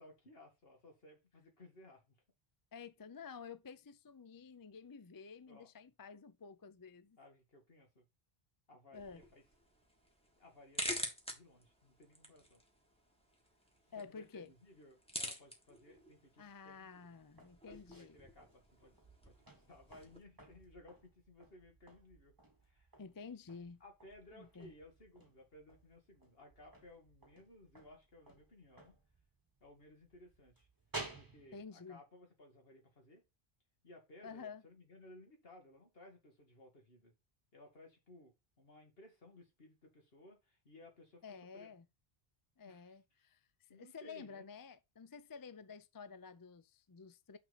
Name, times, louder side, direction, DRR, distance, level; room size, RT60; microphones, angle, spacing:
voice 1, 0.0-2.1 5.5-5.7 7.2-8.1 8.7-9.4 10.4-12.6 14.1-17.1 17.7-18.9 19.2-22.4 22.6-22.9 23.8-29.0 29.6-30.7 31.1-33.2 33.8-37.1 37.5-41.7 42.6-42.9 43.7-44.4, left 1 dB, 65° left, 2.4 m, -60 dB
voice 2, 2.7-7.2 8.9-9.2 13.9-14.5 16.4-18.2 23.0-23.8 24.3-24.7 31.5-32.0 34.2-34.6 41.2-41.9 42.6-47.4, left 5 dB, 30° left, 0.4 m, -51 dB
sound 1, 8.9-20.2, equal, 5° left, 1.6 m, -48 dB
sound 2, 17.3-31.7, right 2 dB, 20° right, 1.3 m, -55 dB
6.1 x 5.9 x 4.1 m
omnidirectional pair, 1.0 m